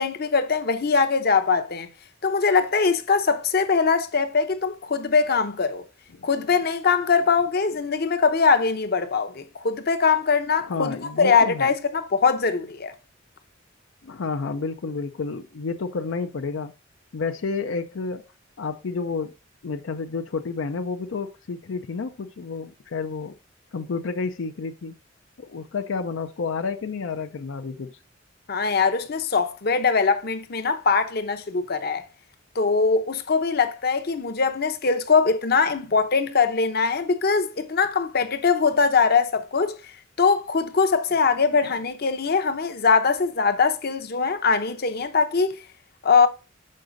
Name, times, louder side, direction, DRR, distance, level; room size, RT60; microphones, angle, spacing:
voice 1, 0.0-1.9 2.2-5.8 6.2-12.9 28.5-32.0 32.5-39.7 40.2-45.6 46.0-46.3, left 5 dB, 55° left, 0.8 m, -22 dB
voice 2, 10.6-11.7 14.0-16.7 17.1-18.2 18.6-19.3 19.6-23.4 23.7-24.9 25.4-28.0, left 4 dB, 85° left, 0.5 m, -30 dB
6.5 x 4.8 x 3.9 m
head